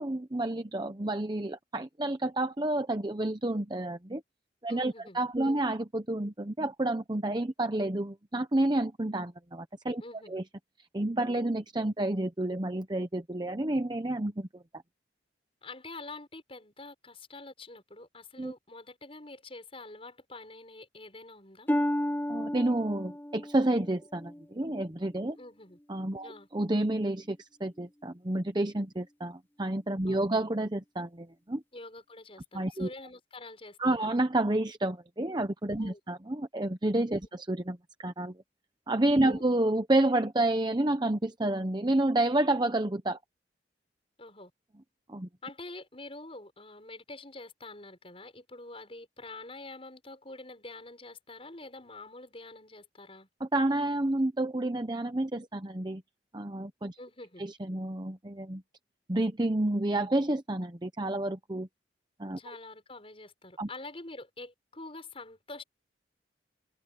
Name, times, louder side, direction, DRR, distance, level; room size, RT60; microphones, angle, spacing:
voice 1, 0.0-4.2 4.6-10.0 10.3-10.4 10.9-14.6 18.4-18.5 22.3-25.4 25.9-31.6 32.5-32.9 33.8-38.4 38.9-43.2 45.1-45.3 53.4-56.0 56.3-57.0 57.4-58.6 59.1-61.7 62.2-62.4 63.6-63.7, right 1 dB, 25° right, 0.9 m, -29 dB
voice 2, 4.7-5.6 10.0-10.4 15.6-21.7 25.4-25.8 26.2-26.5 30.1-30.2 31.7-34.1 35.8-36.0 39.2-39.5 44.2-44.5 45.4-53.3 57.0-57.4 62.4-65.6, left 2 dB, 30° left, 6.7 m, -46 dB
Harp, 21.7-25.4 26.0-26.4 27.0-27.1, left 1 dB, 10° left, 1.0 m, -33 dB
head